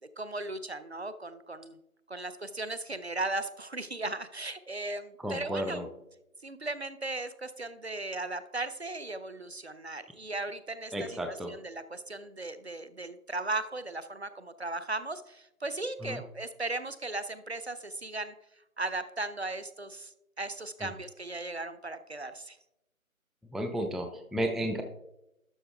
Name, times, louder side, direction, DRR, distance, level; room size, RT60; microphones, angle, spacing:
voice 1, 0.2-1.8 2.1-5.9 6.4-18.3 18.8-22.6, right 2 dB, 50° right, 13 dB, 0.6 m, -37 dB
voice 2, 5.2-5.8 10.9-11.5 16.0-16.2 23.5-24.8, equal, ahead, 5 dB, 0.4 m, -32 dB
12.0 x 6.5 x 3.4 m, 0.85 s
figure-of-eight pair, 175°, 42 cm